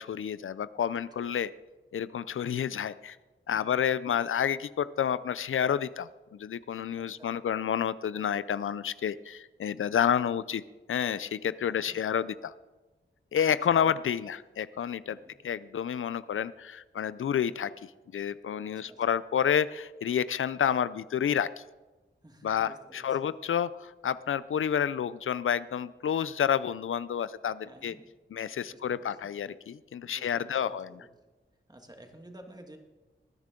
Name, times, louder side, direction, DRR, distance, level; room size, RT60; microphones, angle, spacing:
voice 1, 0.0-1.5 1.9-3.2 3.5-10.6 10.9-12.5 13.3-15.2 15.4-21.6 22.4-28.0 28.3-31.1, left 8 dB, 90° left, 16 dB, 0.4 m, -29 dB
voice 2, 0.9-1.3 3.5-3.9 6.9-7.3 11.6-12.0 13.4-13.9 15.1-15.3 18.6-19.0 22.2-23.3 27.7-28.1 28.6-29.2 30.0-31.1 31.7-32.8, right 1 dB, 20° right, 4 dB, 1.8 m, -53 dB
19.5 x 10.5 x 3.7 m, 1.2 s
wide cardioid pair, 85°, 20 cm